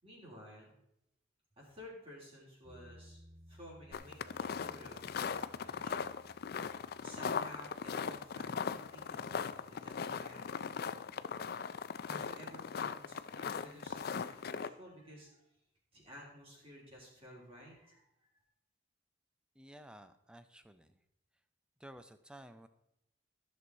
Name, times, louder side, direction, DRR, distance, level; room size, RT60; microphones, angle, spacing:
voice 1, 0.0-0.7 1.6-3.2 3.5-6.1 7.0-10.7 12.0-15.4 15.9-18.3, equal, 30° right, -4 dB, 3.4 m, -54 dB
sound 1, 2.6-11.6, equal, 65° right, 3.3 m, -62 dB
sound 2, 3.9-14.7, left 6 dB, 50° left, 0.4 m, -39 dB
voice 2, 19.5-21.0 21.8-22.7, right 1 dB, 5° right, 10 dB, 0.5 m, -54 dB
14.0 x 6.4 x 4.1 m, 0.81 s
head